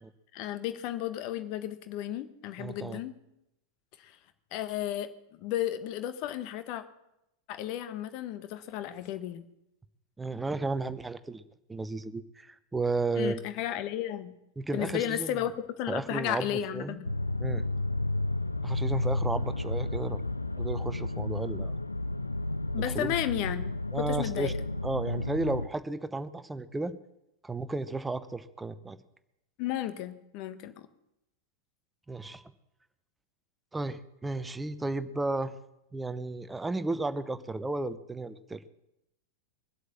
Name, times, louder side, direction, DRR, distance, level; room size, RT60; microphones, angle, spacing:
voice 1, 0.3-3.1 4.0-4.2 4.5-6.8 7.5-9.5 13.2-14.3 14.7-15.5 15.8-17.1 22.7-23.7 24.1-24.5 29.6-30.7, left 12 dB, 45° left, 11 dB, 1.3 m, -33 dB
voice 2, 2.6-3.0 10.2-11.4 11.7-13.4 14.6-15.4 15.9-17.0 17.4-17.6 18.6-20.2 20.6-21.7 22.8-23.1 23.9-24.5 24.8-26.9 27.4-29.0 32.1-32.4 33.7-35.5 35.9-38.6, right 3 dB, 10° right, 13 dB, 0.9 m, -33 dB
sound 1, 17.0-25.7, left 2 dB, 85° left, 0.5 m, -32 dB
22.5 x 8.1 x 7.2 m, 0.86 s
figure-of-eight pair, 90°, 0 cm